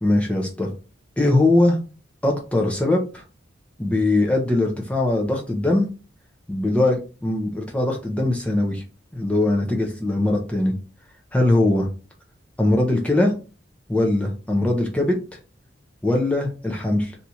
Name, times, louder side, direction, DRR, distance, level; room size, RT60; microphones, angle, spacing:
voice 1, 0.0-0.7 1.2-1.8 2.2-3.2 3.8-5.9 6.5-8.8 9.1-10.7 11.3-11.9 12.6-13.3 13.9-15.2 16.0-17.1, left 2 dB, 5° left, 0 dB, 0.6 m, -21 dB
2.7 x 2.4 x 4.2 m, 0.34 s
head